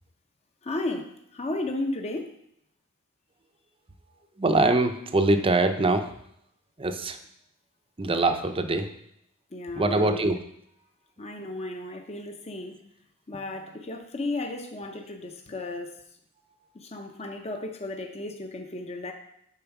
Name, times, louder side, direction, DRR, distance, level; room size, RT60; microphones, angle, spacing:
voice 1, 0.6-1.1 1.3-2.3 9.5-10.3 11.2-12.7 13.3-15.9 16.7-19.1, left 2 dB, 30° left, 4 dB, 0.8 m, -34 dB
voice 2, 4.4-6.1 6.8-7.2 8.0-8.9 9.8-10.4, right 2 dB, 25° right, 7 dB, 0.6 m, -23 dB
8.9 x 4.5 x 5.9 m, 0.74 s
head